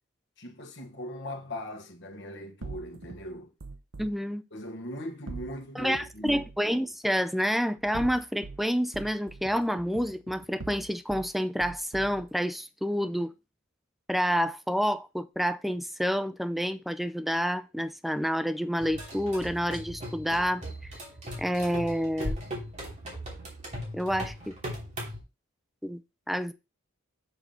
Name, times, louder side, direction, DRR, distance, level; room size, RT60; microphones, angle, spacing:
voice 1, 0.4-3.5 4.5-6.5, equal, 55° left, 1.5 m, -39 dB
sound 1, 2.6-4.1 5.3-6.6 7.8-8.6 8.9-11.3 11.6-12.3, right 3 dB, 65° right, 0.9 m, -43 dB
voice 2, 4.0-4.4 5.8-13.3 14.1-20.9 21.4-22.4 23.9-24.5 25.8-26.0 26.3-26.5, equal, ahead, 0.4 m, -29 dB
sound 2, 18.8-25.2, equal, 35° right, 2.9 m, -38 dB
7.1 x 3.8 x 5.7 m
head